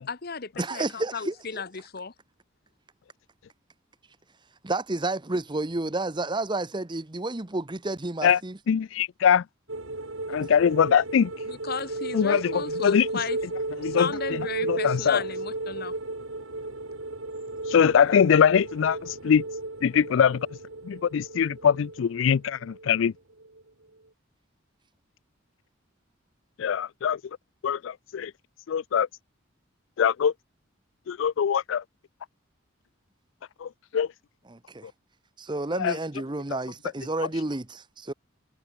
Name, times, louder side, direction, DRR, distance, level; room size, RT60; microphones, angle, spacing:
voice 1, 0.0-2.1 11.5-13.4 13.8-15.9, left 5 dB, 50° left, 1.1 m, -34 dB
voice 2, 0.6-1.6 4.6-8.6 34.5-34.9 35.4-38.1, right 2 dB, 20° right, 0.9 m, -30 dB
voice 3, 8.7-9.4 10.3-11.3 12.1-13.1 13.8-15.2 17.7-19.4 19.8-20.5 20.9-23.1 26.6-27.2 27.6-28.3 28.7-29.1 30.0-30.3 31.1-31.8 33.6-34.1 35.8-35.9, left 7 dB, 65° left, 0.3 m, -22 dB
sound 1, 9.7-23.1 23.4-23.6, right 2 dB, 75° right, 3.1 m, -34 dB
head